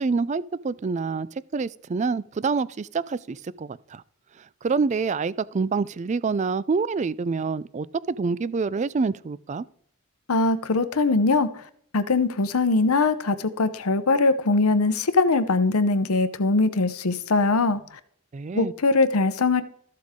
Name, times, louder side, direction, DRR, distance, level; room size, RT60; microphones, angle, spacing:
voice 1, 0.0-4.0 4.6-9.6 18.3-18.7, right 4 dB, 35° right, 0.3 m, -27 dB
voice 2, 10.3-11.5 11.9-17.8 18.5-19.6, left 3 dB, 90° left, 0.8 m, -21 dB
14.0 x 7.6 x 3.7 m
head